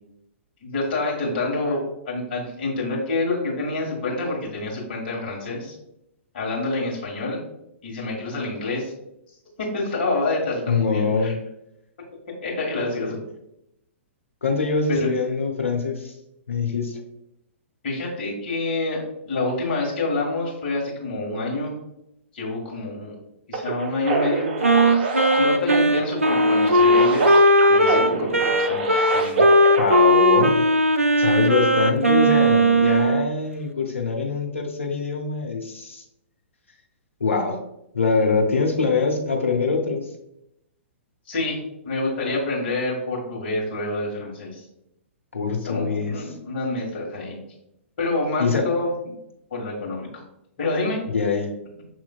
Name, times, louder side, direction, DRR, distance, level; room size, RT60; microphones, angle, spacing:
voice 1, 0.6-5.7 6.3-7.4 7.8-8.9 9.6-11.3 12.4-13.2 14.9-15.1 17.8-21.7 22.3-23.2 23.5-24.5 25.3-27.4 27.7-28.9 29.1-29.4 41.3-41.6 41.8-44.6 45.6-47.4 48.0-49.1 49.5-50.2 50.6-51.0, left 2 dB, 45° left, -3 dB, 1.6 m, -27 dB
voice 2, 10.7-11.4 14.4-16.1 16.5-17.0 29.4-29.5 29.8-30.6 31.2-36.0 37.2-37.6 37.9-40.1 45.3-46.1 48.4-48.7 51.1-51.5, left 4 dB, 70° left, 1 dB, 0.9 m, -24 dB
sound 1, 23.5-30.0, right 3 dB, 45° right, 0.7 m, -27 dB
Wind instrument woodwind instrument, 24.6-33.3, equal, 85° right, 0.4 m, -18 dB
6.5 x 3.1 x 2.3 m, 0.82 s
figure-of-eight pair, 115°, 7 cm